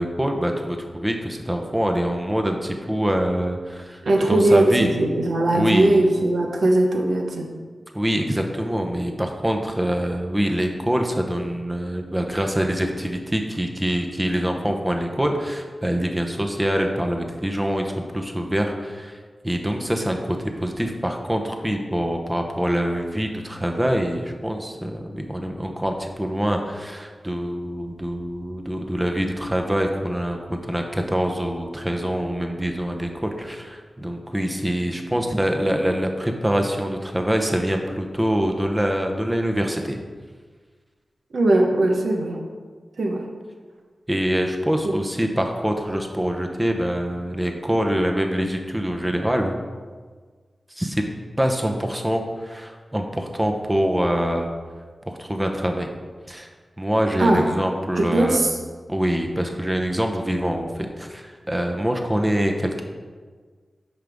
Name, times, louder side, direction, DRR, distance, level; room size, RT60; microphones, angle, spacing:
voice 1, 0.0-4.0 4.3-4.9 5.5-6.0 7.9-40.0 44.1-49.6 50.8-51.0 51.4-54.5 55.1-55.9 56.3-56.5 56.8-58.4 58.9-62.8, equal, 15° right, 3 dB, 0.8 m, -25 dB
voice 2, 4.0-7.5 41.3-42.4 43.0-43.2 44.8-44.9 57.2-57.5 58.0-58.6, right 2 dB, 80° right, 1 dB, 1.0 m, -19 dB
9.8 x 5.2 x 3.5 m, 1.5 s
wide cardioid pair, 65°, 0 cm